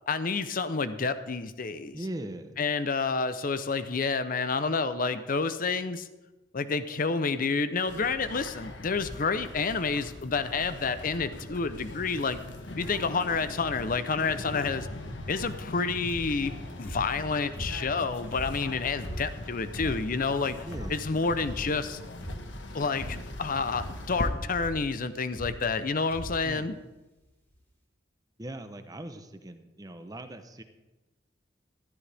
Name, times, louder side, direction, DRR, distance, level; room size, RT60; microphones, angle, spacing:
voice 1, 0.1-2.0 2.6-6.1 6.5-12.4 12.8-14.9 15.3-20.6 20.9-22.0 22.7-26.7, left 4 dB, 50° left, 12 dB, 0.7 m, -29 dB
voice 2, 1.9-2.6 20.6-21.0 26.4-26.8 28.4-30.6, right 1 dB, 20° right, 8 dB, 0.8 m, -40 dB
sound 1, 7.9-24.3, left 1 dB, 80° left, 1.3 m, -41 dB
sound 2, 16.1-16.5 16.8-18.0 18.3-20.2 20.7-21.1 21.4-21.8 22.2-22.6 22.9-23.4 23.7-24.2 24.5-24.8 25.3-25.8 26.1-26.5 27.2-27.3 27.5-27.6, equal, 10° left, 3.3 m, -39 dB
13.5 x 13.0 x 3.5 m, 1.1 s
head